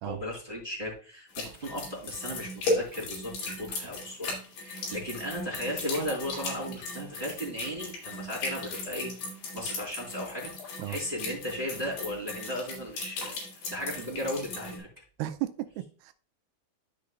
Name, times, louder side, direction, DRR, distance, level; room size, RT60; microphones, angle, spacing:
voice 1, 0.0-9.1 9.5-10.5 10.9-13.4 13.7-14.9, left 1 dB, 15° right, -4 dB, 2.9 m, -36 dB
sound 1, 1.3-14.8, left 2 dB, 75° left, 4.6 m, -37 dB
voice 2, 15.2-16.1, right 14 dB, 90° right, 7 dB, 2.6 m, -34 dB
13.5 x 5.0 x 2.3 m, 0.38 s
omnidirectional pair, 4.5 m